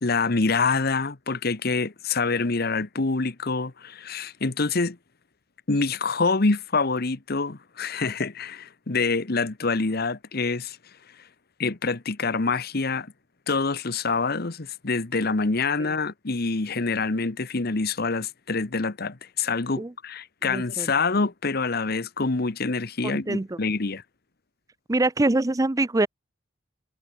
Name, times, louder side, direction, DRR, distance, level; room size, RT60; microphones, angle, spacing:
voice 1, 0.0-5.0 5.7-10.8 11.6-13.1 13.5-24.0, left 4 dB, 55° left, 1.2 m, -26 dB
voice 2, 20.4-20.9 23.0-23.6 24.9-26.1, right 2 dB, 20° right, 0.5 m, -24 dB
head